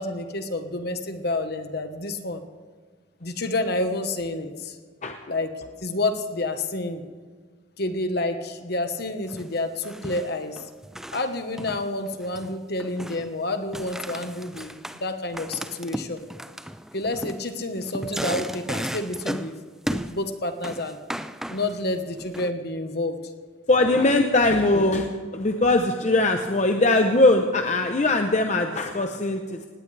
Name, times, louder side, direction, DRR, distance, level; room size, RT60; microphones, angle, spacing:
voice 1, 0.0-2.4 3.2-4.8 5.3-5.5 5.8-7.0 7.8-10.6 11.1-16.2 16.9-19.5 19.9-21.0 21.5-23.2, left 2 dB, 50° left, 7 dB, 1.2 m, -29 dB
sound 1, 9.3-9.6 9.8-11.3 11.6-12.5 12.8-13.3 13.7-15.0 15.3-19.6 19.8-20.2 20.6-21.8 22.2-22.5, equal, ahead, 0.3 m, -35 dB
voice 2, 23.7-29.7, left 2 dB, 35° left, 4 dB, 0.8 m, -21 dB
19.0 x 17.0 x 3.3 m, 1.5 s
head